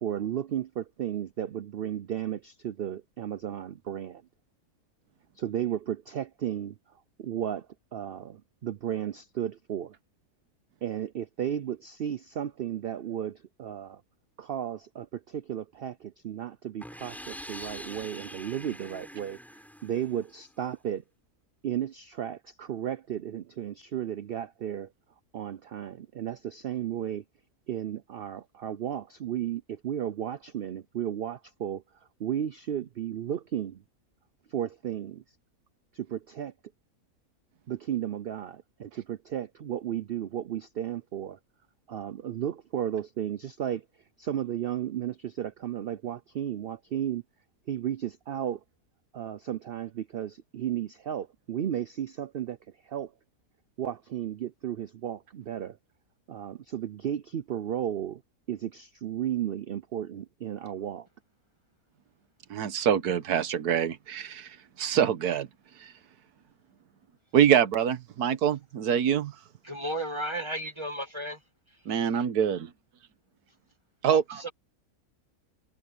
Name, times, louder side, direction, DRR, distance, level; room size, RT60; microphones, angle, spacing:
voice 1, 0.0-4.2 5.4-6.8 7.2-7.7 7.9-9.9 10.8-14.0 14.4-19.4 19.8-21.0 21.6-24.9 25.3-27.2 27.7-31.8 32.2-33.8 34.5-35.2 35.9-36.5 37.7-41.4 41.9-43.8 44.2-47.2 47.7-48.6 49.1-52.6 52.8-53.1 53.8-55.8 56.3-58.2 58.5-61.1, right 10 dB, 65° right, 0.5 m, -34 dB
sound 1, 16.8-20.6, equal, ahead, 6.1 m, -44 dB
voice 2, 62.5-64.5 64.8-65.5 65.8-65.9 67.3-69.3 71.9-72.7 74.0-74.5, right 9 dB, 90° right, 1.5 m, -25 dB
voice 3, 69.6-71.4 74.1-74.5, right 1 dB, 20° right, 2.0 m, -34 dB
omnidirectional pair, 1.6 m